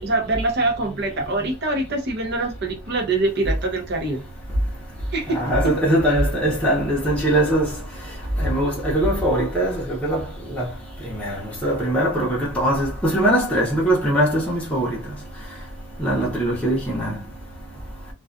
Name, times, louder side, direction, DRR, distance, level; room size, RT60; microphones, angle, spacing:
voice 1, 0.0-4.2 5.1-5.7, right 2 dB, 50° right, 0.7 m, -24 dB
voice 2, 5.3-7.7 8.4-10.2 10.5-10.7 11.0-11.4 11.6-15.0 16.0-17.2, right 1 dB, 5° left, 0.7 m, -21 dB
2.3 x 2.3 x 2.4 m
head